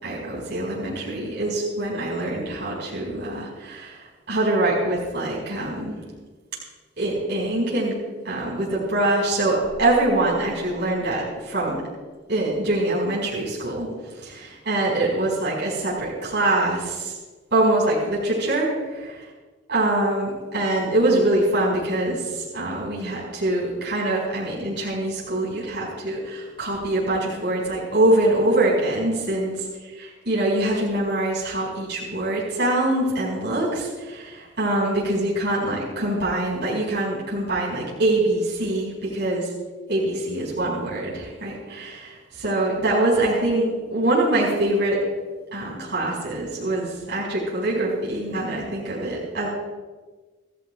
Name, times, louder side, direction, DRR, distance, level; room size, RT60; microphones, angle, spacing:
voice 1, 0.0-4.0 4.3-6.0 7.0-7.9 8.2-11.8 12.3-13.9 14.2-17.1 17.5-19.0 19.7-29.5 30.0-39.4 39.9-45.0 45.5-49.5, right 1 dB, 60° right, -6 dB, 4.8 m, -24 dB
27.0 x 15.0 x 2.3 m, 1.3 s
head